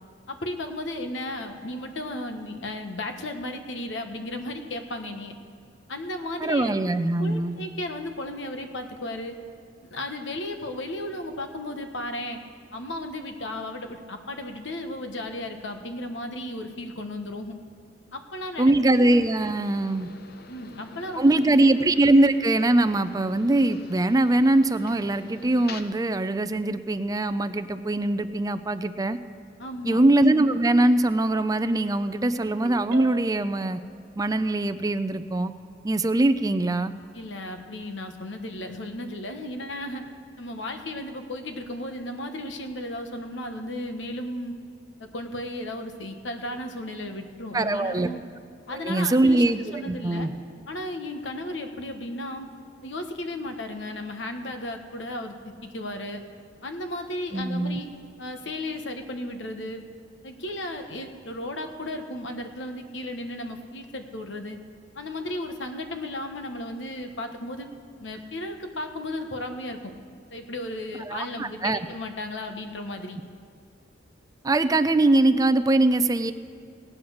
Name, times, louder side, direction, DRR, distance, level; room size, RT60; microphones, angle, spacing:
voice 1, 0.3-5.3 5.9-6.8 7.2-9.4 9.8-12.4 12.7-17.5 18.1-18.9 20.5-21.7 29.6-30.0 37.1-40.0 40.4-44.5 45.0-48.2 48.7-50.3 50.7-52.5 52.8-56.2 56.6-57.9 58.2-59.8 60.2-64.6 64.9-67.7 68.0-69.9 70.3-73.2, left 1 dB, 90° left, 5 dB, 1.3 m, -35 dB
voice 2, 6.4-7.6 18.6-20.1 21.2-29.2 29.8-33.8 34.2-35.5 35.8-36.9 47.5-48.1 48.7-50.3 57.3-57.8 71.1-71.8 74.4-76.3, right 2 dB, 20° right, 11 dB, 0.5 m, -22 dB
sound 1, 18.8-25.8, left 4 dB, 60° left, 0.8 m, -46 dB
Ringtone, 32.4-33.6, right 2 dB, 55° right, 1.7 m, -39 dB
17.5 x 8.6 x 6.4 m, 2.3 s
head